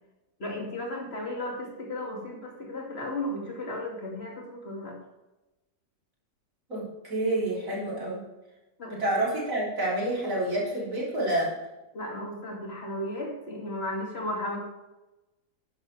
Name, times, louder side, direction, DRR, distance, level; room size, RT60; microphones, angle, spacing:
voice 1, 0.4-5.0 8.8-9.0 11.9-14.6, left 1 dB, 40° left, -1 dB, 2.7 m, -34 dB
voice 2, 6.7-8.2 8.9-11.5, right 1 dB, 55° right, -5 dB, 4.2 m, -28 dB
12.0 x 10.5 x 3.4 m, 1.0 s
omnidirectional pair, 1.7 m